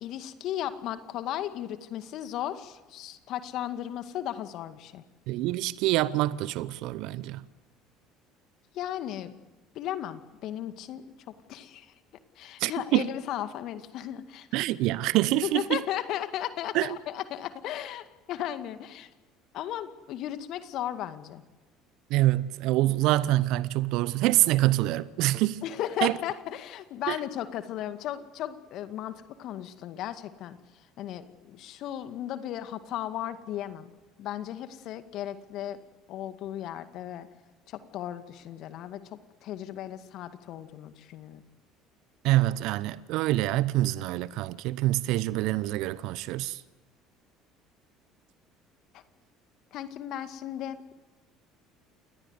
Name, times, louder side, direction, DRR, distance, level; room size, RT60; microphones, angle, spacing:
voice 1, 0.0-5.0 8.7-9.3 9.8-11.0 11.5-11.9 12.4-14.5 15.4-19.1 19.5-21.4 25.6-30.6 31.0-33.9 34.2-35.8 36.1-37.3 37.7-39.0 39.4-41.4 49.7-50.9, left 11 dB, 55° left, 2.0 m, -35 dB
voice 2, 5.3-7.4 12.6-13.1 14.5-15.8 16.7-17.0 22.1-25.6 26.0-26.1 27.1-27.2 42.2-46.6, right 16 dB, 60° right, 0.9 m, -26 dB
29.0 x 21.0 x 8.1 m
hypercardioid pair, 60°, 0 cm